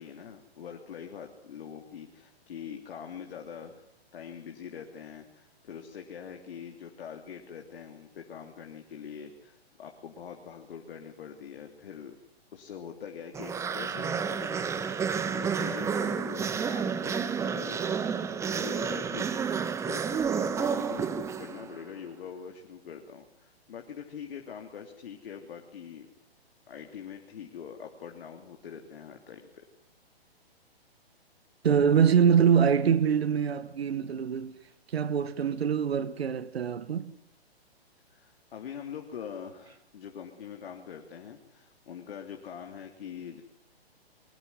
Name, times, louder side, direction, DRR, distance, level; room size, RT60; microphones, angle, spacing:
voice 1, 0.0-3.9 4.1-12.2 12.5-19.3 19.8-26.1 26.7-29.6 38.1-43.4, left 8 dB, 60° left, 3.1 m, -43 dB
sound 1, 13.3-21.8, right 6 dB, 10° right, 1.0 m, -30 dB
voice 2, 31.6-34.6 34.9-37.1, right 7 dB, 70° right, 1.8 m, -24 dB
22.5 x 18.5 x 9.6 m
hypercardioid pair, 140°, 32 cm